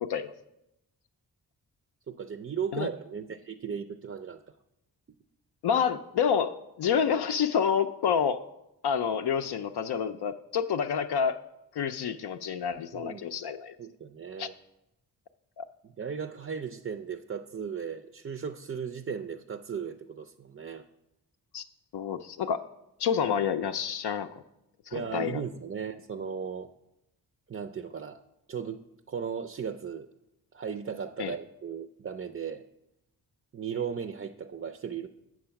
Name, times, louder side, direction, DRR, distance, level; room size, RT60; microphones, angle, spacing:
voice 1, 0.0-0.3 2.7-2.9 5.6-8.4 8.8-11.4 11.7-13.8 14.4-14.5 15.6-15.7 21.5-21.6 21.9-22.6 23.0-24.4 24.9-25.4 31.2-31.3, left 7 dB, 75° left, 6 dB, 0.5 m, -28 dB
voice 2, 2.1-4.4 12.9-13.2 13.8-14.5 15.8-20.8 24.9-26.7 27.5-28.2 28.5-28.8 29.1-30.1 30.5-32.7 33.5-35.1, right 7 dB, 35° right, 7 dB, 0.4 m, -36 dB
7.9 x 6.3 x 5.7 m, 0.88 s
cardioid pair, 70°, 40 cm